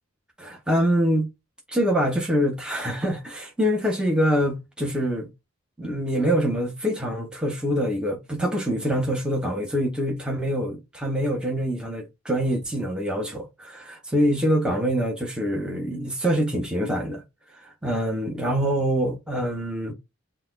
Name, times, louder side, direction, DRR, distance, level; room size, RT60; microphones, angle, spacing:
voice 1, 0.4-1.3 1.7-5.3 5.8-17.2 17.5-19.9, equal, 5° right, 0.7 m, -25 dB
4.0 x 2.2 x 3.7 m
head